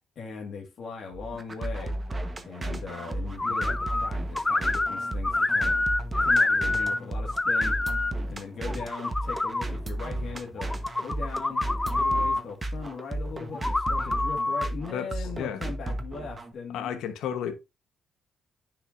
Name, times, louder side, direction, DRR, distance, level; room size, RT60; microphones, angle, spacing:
voice 1, 0.2-2.0 2.4-5.8 6.2-7.8 8.3-10.7 11.0-17.0, left 5 dB, 65° left, 1.9 m, -39 dB
sound 1, 1.1-16.5, right 1 dB, 25° right, 1.2 m, -34 dB
sound 2, 3.4-4.1 4.4-7.0 7.3-8.1 8.7-9.6 10.6-12.4 13.5-14.7, left 2 dB, 20° left, 0.5 m, -26 dB
voice 2, 14.9-15.6 16.7-17.5, left 9 dB, 85° left, 1.1 m, -33 dB
9.9 x 5.5 x 2.6 m
cardioid pair, 90°, 0 cm